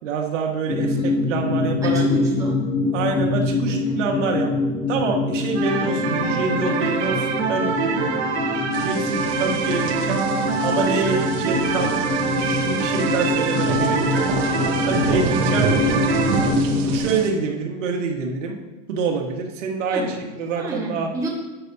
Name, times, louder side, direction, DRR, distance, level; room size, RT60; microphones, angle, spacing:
voice 1, 0.0-2.0 2.9-4.5 4.9-8.1 8.8-10.3 10.6-11.9 12.4-14.2 14.9-15.7 16.9-18.6 18.9-21.1, right 4 dB, 90° right, 1 dB, 1.7 m, -26 dB
sound 1, 0.7-17.0, left 3 dB, 15° left, 0.6 m, -25 dB
voice 2, 0.8-1.2 1.8-2.6 3.7-4.0 19.9-20.2 20.6-21.3, right 2 dB, 10° right, -3 dB, 1.4 m, -30 dB
sound 2, 5.5-16.5, right 5 dB, 60° right, 1.5 m, -25 dB
sound 3, 8.7-17.3, right 5 dB, 35° right, 0.9 m, -28 dB
10.5 x 8.3 x 2.8 m, 1.2 s
supercardioid pair, 165°, 36 cm